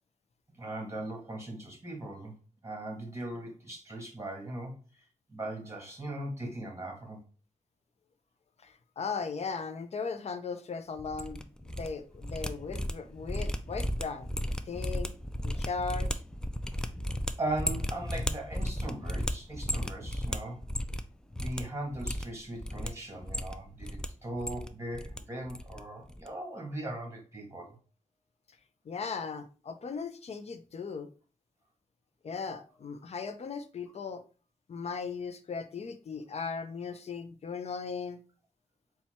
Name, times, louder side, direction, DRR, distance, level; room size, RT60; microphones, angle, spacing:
voice 1, 0.6-2.3 2.6-4.8 5.3-7.2 17.4-20.6 21.4-27.8, right 1 dB, 20° right, 1.7 m, -39 dB
voice 2, 8.6-14.3 14.6-15.1 15.4-16.1 28.9-31.1 32.2-34.2 34.7-38.2, left 5 dB, 55° left, 0.5 m, -37 dB
sound 1, 11.0-11.9 12.1-21.1 21.3-21.6 21.9-22.9 23.2-24.1 24.3-25.2 25.5-25.8 26.1-26.3, equal, 5° left, 0.4 m, -34 dB
4.2 x 2.3 x 4.2 m
wide cardioid pair, 85°, 13 cm